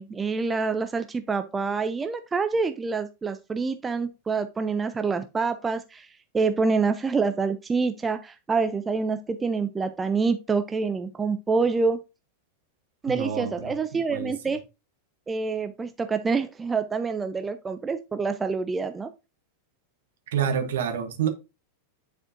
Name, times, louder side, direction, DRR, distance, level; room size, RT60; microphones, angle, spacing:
voice 1, 0.0-12.0 13.0-14.6 15.3-19.1, right 4 dB, 15° right, 0.4 m, -27 dB
voice 2, 13.1-13.7 14.1-14.3 20.3-21.3, right 8 dB, 60° right, 1.2 m, -28 dB
9.8 x 4.3 x 2.5 m
figure-of-eight pair, 90°, 0 cm